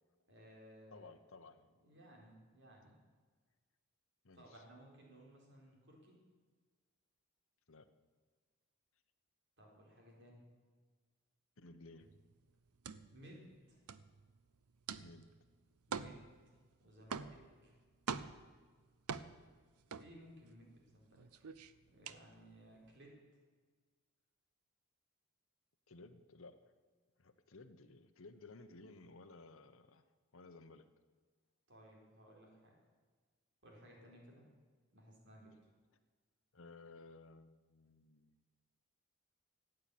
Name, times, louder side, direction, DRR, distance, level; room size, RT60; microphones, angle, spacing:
voice 1, 0.3-1.1 1.8-2.9 4.3-6.2 9.6-10.4 13.1-13.8 15.9-16.4 16.8-17.8 19.9-21.5 21.9-23.2 31.7-32.8 33.6-34.4 34.9-35.6, equal, 55° right, -1 dB, 3.9 m, -59 dB
voice 2, 0.9-1.7 4.2-4.6 7.7-7.9 11.6-12.1 15.0-15.3 25.9-26.7 27.2-30.1 30.3-30.8 36.5-38.4, left 3 dB, 65° left, 9 dB, 1.0 m, -57 dB
sound 1, 12.0-20.7 21.0-22.9, right 5 dB, 85° right, 0.6 m, -46 dB
14.5 x 9.0 x 8.5 m, 1.5 s
head